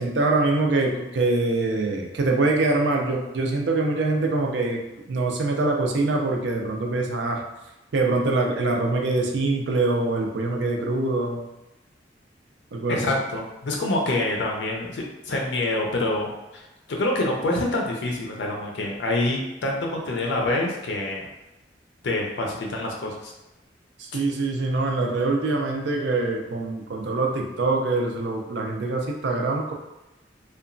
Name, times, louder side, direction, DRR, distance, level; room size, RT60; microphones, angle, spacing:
voice 1, 0.0-4.8 5.1-7.4 7.9-11.4 12.7-13.1 24.0-29.7, right 2 dB, 70° right, 1 dB, 0.4 m, -24 dB
voice 2, 12.9-16.6 16.9-21.3 22.0-23.3, left 2 dB, 70° left, 0 dB, 0.4 m, -26 dB
2.8 x 2.2 x 2.5 m, 1.0 s
head